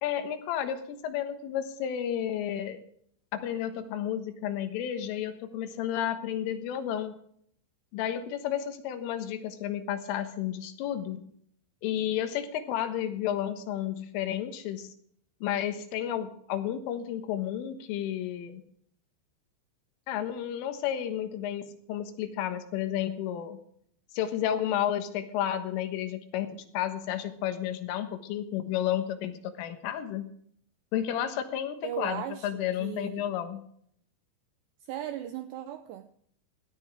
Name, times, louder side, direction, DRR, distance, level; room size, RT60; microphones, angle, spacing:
voice 1, 0.0-2.8 3.3-7.2 7.9-11.2 11.8-14.9 15.4-18.6 20.1-23.6 24.1-30.2 30.9-33.6, left 10 dB, 90° left, 3.9 m, -32 dB
voice 2, 31.8-33.2 34.8-36.1, right 11 dB, 80° right, 2.5 m, -37 dB
17.5 x 12.5 x 3.5 m
omnidirectional pair, 5.6 m